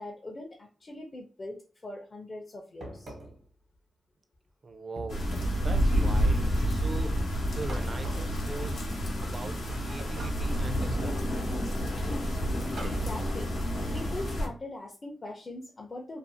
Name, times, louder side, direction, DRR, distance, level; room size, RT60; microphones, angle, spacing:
voice 1, 0.0-3.1 12.8-13.5 13.9-16.2, left 2 dB, 40° left, 0.5 m, -41 dB
sound 1, 2.8-3.5 5.0-5.7 7.7-8.4 10.0-10.7 12.8-13.2, right 2 dB, 85° right, 0.9 m, -44 dB
voice 2, 4.6-5.3 5.6-11.3, right 3 dB, 50° right, 0.4 m, -41 dB
sound 2, 5.1-14.5, equal, 90° left, 0.8 m, -29 dB
2.5 x 2.4 x 2.6 m
cardioid pair, 80°, 0 cm